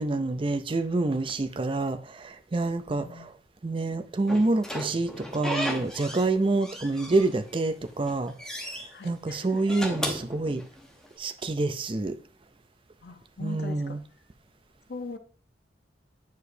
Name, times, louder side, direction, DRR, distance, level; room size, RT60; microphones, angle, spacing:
voice 1, 0.0-3.3 3.6-8.3 9.0-10.6 11.2-12.2 13.4-14.0, right 2 dB, 30° right, 0.4 m, -27 dB
voice 2, 2.9-3.3 8.9-9.6 13.0-14.0 14.9-15.2, left 3 dB, 60° left, 0.7 m, -40 dB
Slam / Squeak, 4.3-6.3 6.6-7.6 8.0-8.9 9.5-11.1, equal, 5° left, 0.8 m, -35 dB
8.1 x 4.8 x 2.6 m
head